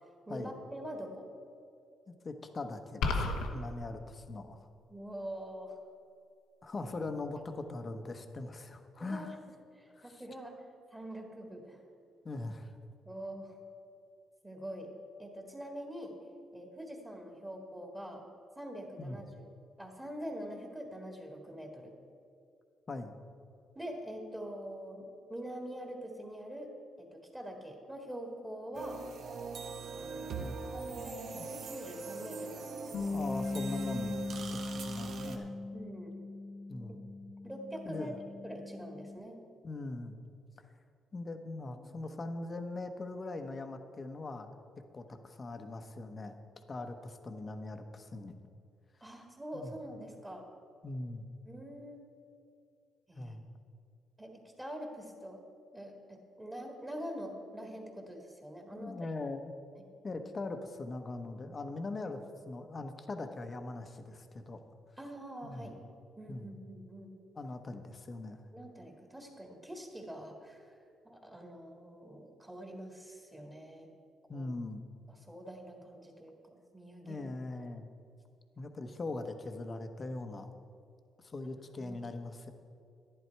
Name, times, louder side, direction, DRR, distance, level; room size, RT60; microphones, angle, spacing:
voice 1, 0.3-1.3 4.9-5.8 9.0-9.3 9.7-10.5 10.9-11.8 13.0-13.6 14.4-14.9 15.2-16.2 16.5-18.2 18.6-19.5 19.8-21.9 23.8-26.7 27.0-29.0 29.9-30.4 30.7-33.1 35.7-36.2 36.8-36.9 37.4-39.4 41.7-42.2 49.0-50.5 51.5-52.0 53.1-53.4 54.2-55.5 55.7-59.1 65.0-65.7 66.2-67.1 68.5-70.8 71.0-73.9 74.3-74.5 75.1-77.3 81.8-82.0, equal, 10° right, 1 dB, 1.9 m, -45 dB
voice 2, 2.2-4.7 6.6-9.4 9.9-10.1 12.2-12.7 19.0-19.2 22.9-23.2 30.4-30.6 31.3-31.5 33.1-35.5 36.7-37.0 37.8-38.2 39.6-40.2 41.1-44.6 44.9-48.3 49.5-49.7 50.8-51.2 53.1-53.4 58.7-59.5 60.0-64.6 65.4-65.7 66.3-66.6 67.3-68.4 74.3-74.8 77.0-77.8 78.6-80.5 81.2-82.5, left 2 dB, 35° left, 7 dB, 1.0 m, -41 dB
sound 1, 3.0-3.5, left 3 dB, 85° left, 1.1 m, -30 dB
sound 2, 28.7-35.4, right 4 dB, 65° right, 1.1 m, -42 dB
Bass guitar, 32.9-39.2, left 2 dB, 65° left, 1.1 m, -39 dB
11.0 x 11.0 x 4.6 m, 2.4 s
cardioid pair, 90°, 0 cm